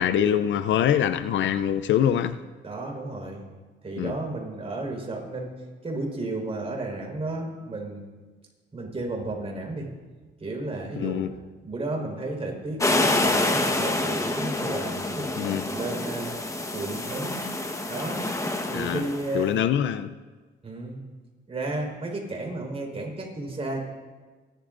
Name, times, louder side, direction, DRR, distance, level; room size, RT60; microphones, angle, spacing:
voice 1, 0.0-2.4 4.0-4.1 11.0-11.3 15.4-15.7 18.7-19.0 19.3-20.1, left 9 dB, 70° left, 13 dB, 0.6 m, -24 dB
voice 2, 2.6-3.4 3.8-5.5 5.8-8.0 8.7-9.9 10.4-11.3 11.6-16.3 16.7-18.2 18.7-19.5 20.6-21.0 21.5-23.8, right 2 dB, 30° right, 0 dB, 4.6 m, -33 dB
sound 1, 12.8-19.4, left 2 dB, 15° left, 1.2 m, -27 dB
28.0 x 12.5 x 2.6 m, 1.3 s
cardioid pair, 90°, 20 cm